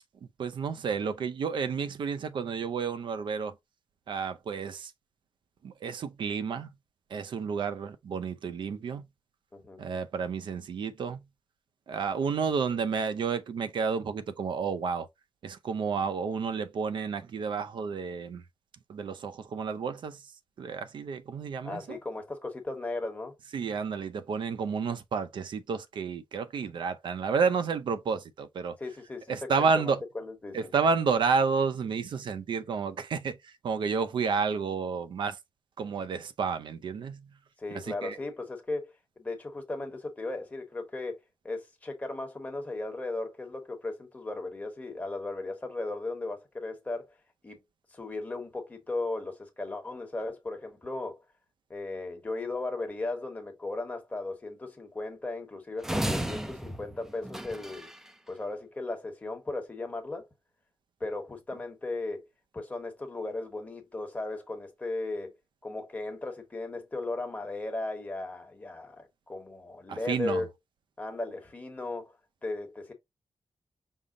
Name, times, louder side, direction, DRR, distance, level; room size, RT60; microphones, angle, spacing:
voice 1, 0.4-3.6 4.1-4.9 5.6-6.7 7.1-9.0 9.8-11.2 11.9-15.1 15.4-18.4 18.9-20.3 20.6-22.0 23.5-28.8 29.3-30.0 30.5-35.4 35.8-37.3 37.7-38.2 69.9-70.4, right 5 dB, 85° right, 0.6 m, -31 dB
voice 2, 9.5-9.9 21.6-23.3 28.8-29.5 29.7-30.7 37.6-41.2 41.4-47.1 47.4-47.6 47.9-51.2 51.7-57.9 58.3-60.3 61.0-62.3 62.5-65.3 65.6-70.5 71.0-72.1 72.4-72.9, left 2 dB, 20° left, 1.0 m, -36 dB
sound 1, 55.8-58.1, right 1 dB, 5° right, 0.4 m, -33 dB
5.5 x 2.0 x 3.7 m
wide cardioid pair, 170°, 8 cm